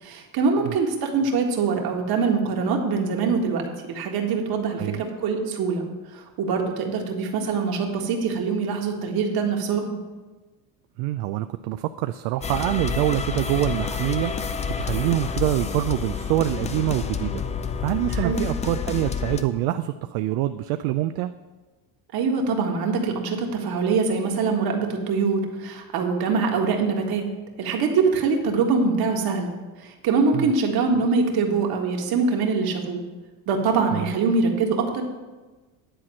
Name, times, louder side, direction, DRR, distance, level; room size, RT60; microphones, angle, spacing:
voice 1, 0.0-3.6 3.9-5.8 6.1-9.9 18.1-18.5 22.1-27.2 27.6-29.6 29.8-33.0 33.5-35.0, right 4 dB, 50° right, 2 dB, 1.8 m, -23 dB
voice 2, 11.0-14.3 14.8-17.4 17.8-21.3 30.3-30.5 33.9-34.1, right 14 dB, 75° right, 10 dB, 0.5 m, -25 dB
sound 1, 12.4-19.4, left 6 dB, 15° left, 0.3 m, -29 dB
10.0 x 4.3 x 7.6 m, 1.2 s
supercardioid pair, 115°, 45 cm